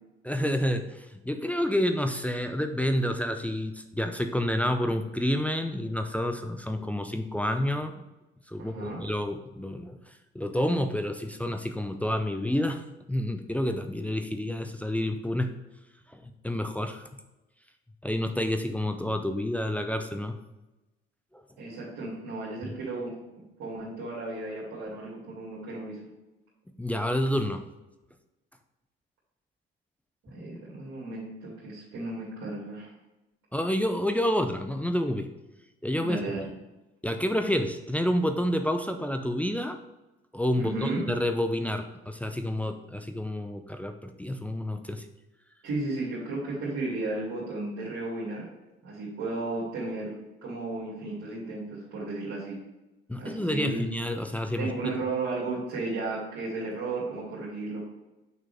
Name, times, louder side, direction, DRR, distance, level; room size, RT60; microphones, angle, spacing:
voice 1, 0.2-7.9 8.5-15.5 16.1-17.1 18.0-20.4 21.3-21.4 22.6-22.7 26.8-27.6 33.5-35.3 35.8-36.2 37.0-39.8 40.3-45.1 53.1-54.9, left 1 dB, 5° left, 6 dB, 0.6 m, -29 dB
voice 2, 8.6-9.0 21.6-23.1 23.6-26.0 30.2-32.9 36.0-36.5 40.6-41.1 45.6-48.5 48.8-50.1 50.4-52.6 53.2-53.8 54.6-57.8, right 2 dB, 55° right, -6 dB, 2.5 m, -34 dB
6.6 x 6.0 x 3.3 m, 1.0 s
figure-of-eight pair, 50°, 30 cm